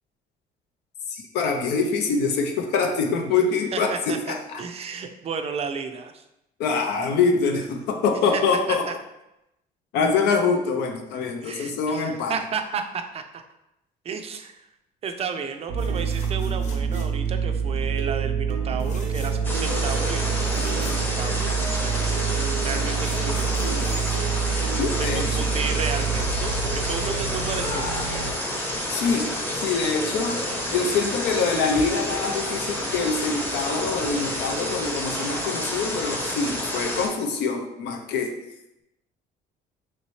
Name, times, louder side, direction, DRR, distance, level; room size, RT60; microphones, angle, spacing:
voice 1, 1.1-4.6 6.6-8.9 9.9-12.3 24.8-25.5 28.9-30.4 30.7-38.4, left 4 dB, 80° left, 4 dB, 0.5 m, -25 dB
voice 2, 3.7-6.2 8.3-8.4 8.9-9.0 11.4-13.4 14.0-14.7 15.0-23.7 25.0-28.1, right 6 dB, 35° right, 7 dB, 0.4 m, -33 dB
sound 1, 15.7-28.3, right 6 dB, 90° right, 0.5 m, -26 dB
sound 2, 15.8-17.4 17.7-18.1 18.7-19.6 19.9-20.0 20.2-21.7 22.5-25.1 27.0-27.1 27.4-27.5, left 3 dB, 45° left, 0.8 m, -45 dB
sound 3, 19.4-37.1, left 1 dB, 10° left, 0.7 m, -29 dB
3.1 x 2.8 x 3.1 m, 0.88 s
cardioid pair, 110°, 17 cm